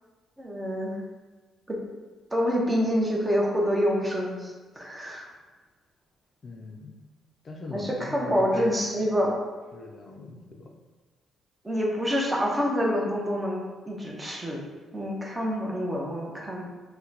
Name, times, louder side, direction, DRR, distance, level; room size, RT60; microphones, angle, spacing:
voice 1, 0.4-1.0 1.7-1.8 2.3-5.3 7.7-9.4 11.6-14.6 14.9-16.7, equal, 15° right, -2 dB, 0.7 m, -27 dB
voice 2, 6.4-7.0 7.4-9.3 9.7-10.4, left 3 dB, 40° left, 1 dB, 0.4 m, -41 dB
2.9 x 2.1 x 3.8 m, 1.3 s
cardioid pair, 110°, 0 cm